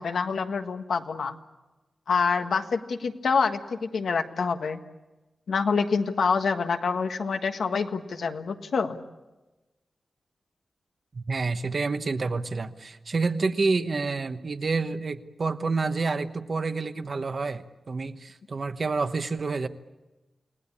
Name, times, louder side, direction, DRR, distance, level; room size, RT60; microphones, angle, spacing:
voice 1, 0.0-1.4 2.1-4.8 5.5-9.0, left 5 dB, 90° left, 6 dB, 1.6 m, -26 dB
voice 2, 11.1-19.7, right 4 dB, 45° right, 9 dB, 1.1 m, -28 dB
29.5 x 18.5 x 8.6 m, 1.1 s
wide cardioid pair, 155°, 0 cm